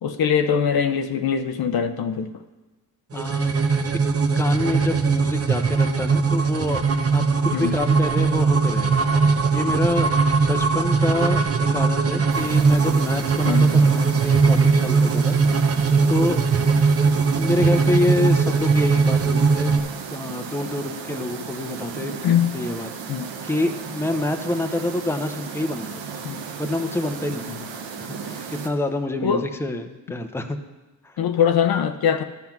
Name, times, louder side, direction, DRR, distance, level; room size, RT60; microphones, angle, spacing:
voice 1, 0.0-2.3 7.5-7.7 13.4-13.7 22.2-22.5 23.1-23.3 26.2-26.4 29.2-29.4 31.2-32.2, left 8 dB, 60° left, 8 dB, 0.7 m, -22 dB
voice 2, 3.1-3.5 4.4-9.0 9.5-15.4 16.1-16.5 17.3-19.7 20.1-22.2 22.5-22.9 23.4-25.9 26.6-27.6 28.0-30.6 31.0-31.2, left 2 dB, 5° left, 6 dB, 0.8 m, -27 dB
sound 1, 3.1-19.8, right 4 dB, 35° right, 0.8 m, -20 dB
sound 2, 12.3-28.7, right 6 dB, 80° right, 1.1 m, -35 dB
12.0 x 5.8 x 6.0 m, 1.2 s
cardioid pair, 70°, 43 cm